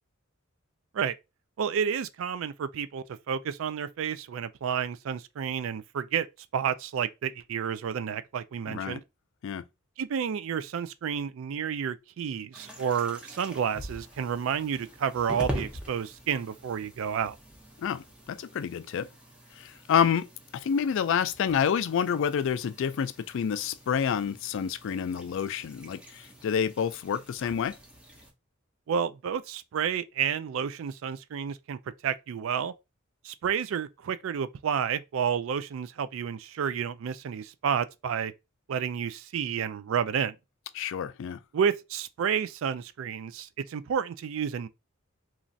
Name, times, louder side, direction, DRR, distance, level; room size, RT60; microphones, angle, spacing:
voice 1, 1.6-6.3 6.5-9.0 10.0-17.4 28.9-31.8 32.0-32.7 33.2-38.3 38.7-40.4 41.5-44.7, right 7 dB, 70° right, 0.3 m, -30 dB
voice 2, 8.7-9.0 9.4-9.6 17.8-19.1 19.6-20.3 20.5-27.8 40.7-41.4, left 7 dB, 65° left, 0.3 m, -28 dB
sound 1, 12.5-28.3, equal, 5° right, 0.7 m, -44 dB
3.1 x 2.4 x 2.6 m
head